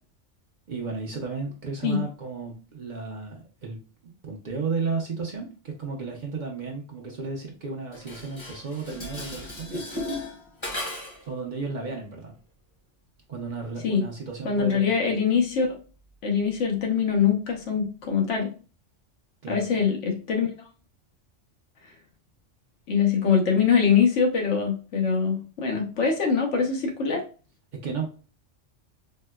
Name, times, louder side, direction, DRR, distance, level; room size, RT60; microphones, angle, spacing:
voice 1, 0.7-3.8 4.2-9.9 11.3-12.4 13.3-14.9 19.4-19.8 27.8-28.1, right 4 dB, 50° right, 0 dB, 0.6 m, -33 dB
Dishes pots and pans, 7.9-11.3, left 1 dB, 25° left, 0.8 m, -35 dB
voice 2, 14.4-15.8 16.2-18.5 19.5-20.5 22.9-27.2, left 6 dB, 80° left, 2 dB, 1.1 m, -23 dB
4.2 x 2.1 x 2.2 m, 0.36 s
omnidirectional pair, 1.2 m